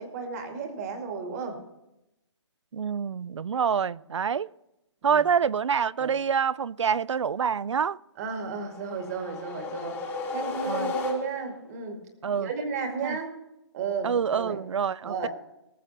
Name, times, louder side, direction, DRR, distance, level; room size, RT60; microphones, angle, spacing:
voice 1, 0.0-1.6 5.1-5.2 6.0-6.1 8.2-10.0 10.3-12.0 12.4-13.4 13.7-14.6 15.0-15.3, right 5 dB, 35° right, 2.2 m, -34 dB
voice 2, 2.7-4.5 5.0-8.0 10.7-10.9 12.2-12.5 13.0-13.2 14.0-15.3, right 7 dB, 90° right, 0.4 m, -26 dB
sound 1, 8.6-11.7, left 3 dB, 15° left, 1.8 m, -34 dB
20.0 x 6.8 x 4.2 m
hypercardioid pair, 155°, 15 cm